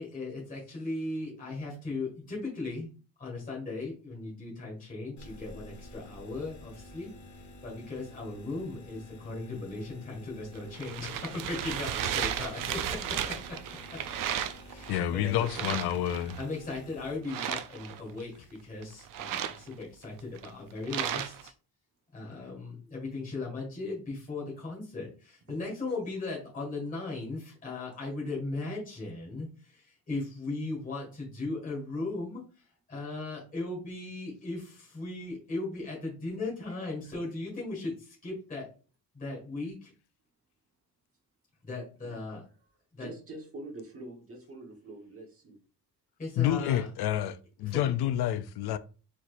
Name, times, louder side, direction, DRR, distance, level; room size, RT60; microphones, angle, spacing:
voice 1, 0.0-2.9 3.2-13.6 13.9-14.0 14.7-15.7 16.4-21.5 22.1-38.7 39.1-39.9 41.6-42.4 42.9-43.1 46.2-46.9 47.6-47.9, left 3 dB, 20° left, 1.9 m, -38 dB
sound 1, 5.2-17.2, left 2 dB, 45° left, 0.9 m, -50 dB
sound 2, 10.6-15.1 15.4-16.4 17.2-18.2 18.8-21.5, right 10 dB, 55° right, 0.5 m, -34 dB
voice 2, 14.9-16.4 46.4-48.8, left 11 dB, 75° left, 0.5 m, -29 dB
voice 3, 43.0-45.6, right 2 dB, 35° right, 1.3 m, -45 dB
4.5 x 4.1 x 2.5 m
cardioid pair, 170°, 39 cm